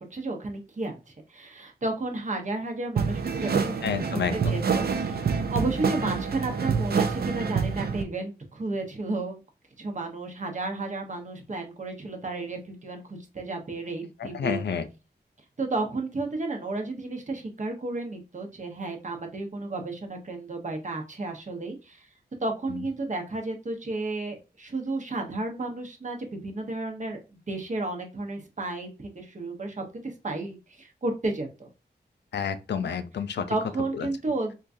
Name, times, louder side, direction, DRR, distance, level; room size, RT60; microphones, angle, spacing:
voice 1, 0.0-3.8 4.1-9.4 9.8-14.6 15.6-22.1 22.4-31.7 33.5-34.5, right 2 dB, 45° right, 0.9 m, -32 dB
sound 1, 3.0-8.0, right 6 dB, 65° right, 0.5 m, -27 dB
voice 2, 3.8-4.5 14.2-14.9 32.3-33.6 33.9-34.1, left 7 dB, 90° left, 0.4 m, -29 dB
3.7 x 2.4 x 2.5 m
wide cardioid pair, 70°, 18 cm